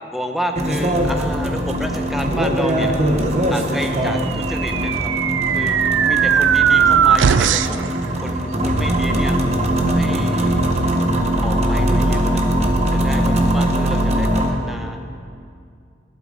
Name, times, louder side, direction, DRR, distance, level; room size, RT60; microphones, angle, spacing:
voice 1, 0.1-2.9 3.5-5.1 5.5-7.8 8.2-9.4 9.9-10.7 11.4-12.5 12.9-15.0, equal, ahead, 4 dB, 0.7 m, -30 dB
sound 1, 0.6-14.5, right 1 dB, 35° right, 1.0 m, -20 dB
sound 2, 4.3-7.9, right 8 dB, 90° right, 0.4 m, -17 dB
13.0 x 11.0 x 3.9 m, 2.4 s
head